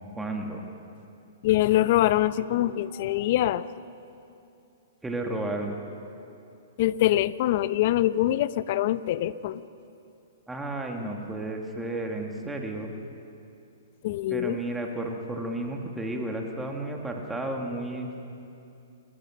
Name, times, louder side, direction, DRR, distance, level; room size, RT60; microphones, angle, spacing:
voice 1, 0.2-0.6 5.0-5.8 10.5-12.9 14.3-18.1, right 2 dB, 10° right, 1 dB, 2.3 m, -32 dB
voice 2, 1.4-3.6 6.8-9.6 14.0-14.6, left 14 dB, 50° left, 15 dB, 0.7 m, -24 dB
29.0 x 13.5 x 6.6 m, 2.7 s
hypercardioid pair, 120°, 0 cm